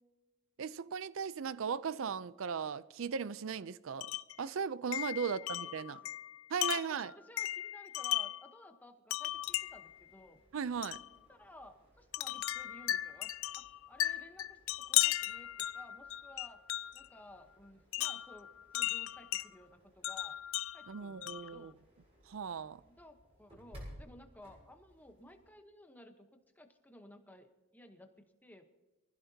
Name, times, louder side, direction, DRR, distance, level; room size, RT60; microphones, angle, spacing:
voice 1, 0.6-4.1 4.4-6.0 6.5-7.1 10.5-11.0 20.9-21.7 22.3-22.8, right 6 dB, 60° right, 0.4 m, -37 dB
Wind chime, 4.0-4.4 4.9-8.5 9.1-9.9 10.8-11.1 12.1-17.1 17.9-19.5 20.0-21.6, left 15 dB, 65° left, 0.4 m, -36 dB
voice 2, 5.2-6.1 6.7-10.4 11.3-16.6 16.9-20.4 20.7-21.8 22.8-28.6, left 1 dB, 10° left, 1.0 m, -57 dB
sound 1, 9.2-25.5, equal, 25° right, 6.0 m, -60 dB
23.5 x 15.5 x 2.8 m
head